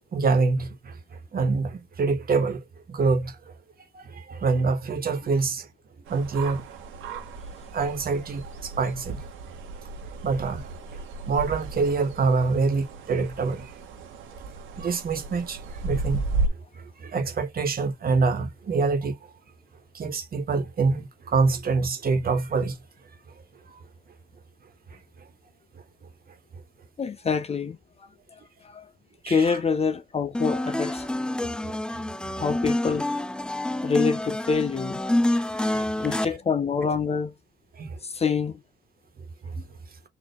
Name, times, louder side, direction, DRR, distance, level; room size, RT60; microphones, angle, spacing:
voice 1, 0.1-0.9 1.3-2.6 2.9-3.3 3.9-5.7 6.1-6.6 7.7-9.2 10.2-11.0 11.3-13.7 14.8-16.2 16.7-19.2 19.9-22.7 23.7-23.8 29.2-29.6 31.6-31.8 35.4-36.1 37.8-38.0 39.5-39.6, right 4 dB, 50° right, 1.5 m, -26 dB
sound 1, 6.1-16.5, right 3 dB, 90° right, 1.6 m, -34 dB
voice 2, 27.0-27.8 28.6-28.9 29.3-31.1 32.4-33.1 33.8-35.0 36.0-37.3 38.0-38.6, left 5 dB, 30° left, 0.7 m, -26 dB
sound 2, 30.3-36.3, left 1 dB, 5° left, 0.3 m, -27 dB
4.5 x 2.9 x 3.3 m
cardioid pair, 90°, 20 cm